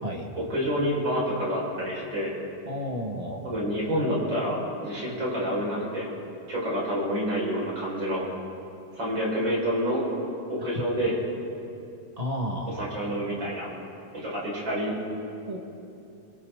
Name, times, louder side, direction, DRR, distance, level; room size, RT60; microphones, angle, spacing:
voice 1, 0.4-2.3 3.4-6.1 6.5-8.2 9.0-10.0 10.5-11.1 12.8-13.7 14.2-14.9, equal, 30° right, -5 dB, 6.6 m, -28 dB
voice 2, 2.6-3.5 10.6-10.7 12.2-12.8 15.5-15.6, equal, 15° right, -1 dB, 1.4 m, -32 dB
28.0 x 23.0 x 4.1 m, 2.7 s
omnidirectional pair, 3.8 m